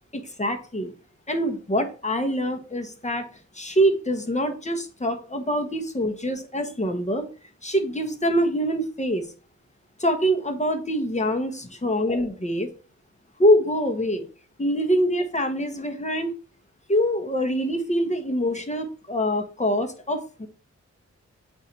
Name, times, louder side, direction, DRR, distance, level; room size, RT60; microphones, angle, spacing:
voice 1, 0.1-0.9 1.3-3.2 3.5-7.3 7.6-9.3 10.0-12.7 13.4-14.3 14.6-16.3 16.9-20.5, equal, 25° left, 5 dB, 1.2 m, -24 dB
8.0 x 2.8 x 4.6 m, 0.37 s
cardioid pair, 75°, 29 cm